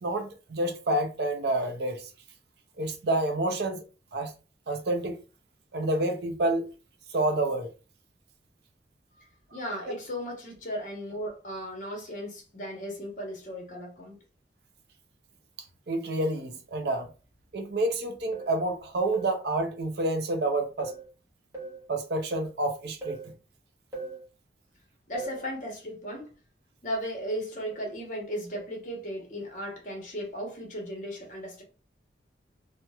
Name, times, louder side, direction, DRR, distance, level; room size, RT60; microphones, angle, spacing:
voice 1, 0.0-2.1 2.8-3.8 4.1-4.3 4.7-5.2 5.7-6.7 7.1-7.7 15.9-17.1 17.5-20.9 21.9-23.3, right 2 dB, 60° right, 0.5 m, -28 dB
voice 2, 9.2-14.2 25.1-26.3 26.8-31.6, equal, 45° left, 0.9 m, -36 dB
sound 1, 18.3-18.6 19.1-19.4 20.8-21.1 21.5-21.9 23.0-23.3 23.9-24.2 25.1-25.5 27.7-28.0 28.5-28.7, right 3 dB, 20° right, 1.0 m, -40 dB
2.9 x 2.1 x 2.3 m
head